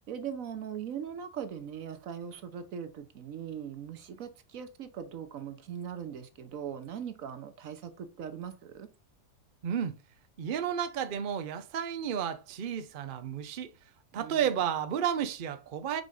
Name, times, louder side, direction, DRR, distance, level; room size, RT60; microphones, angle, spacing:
voice 1, 0.1-8.9 14.1-14.5, right 8 dB, 60° right, 1.1 m, -40 dB
voice 2, 9.6-10.0 10.4-13.7 14.1-16.0, right 8 dB, 80° right, 0.4 m, -32 dB
5.3 x 4.7 x 3.8 m
omnidirectional pair, 1.8 m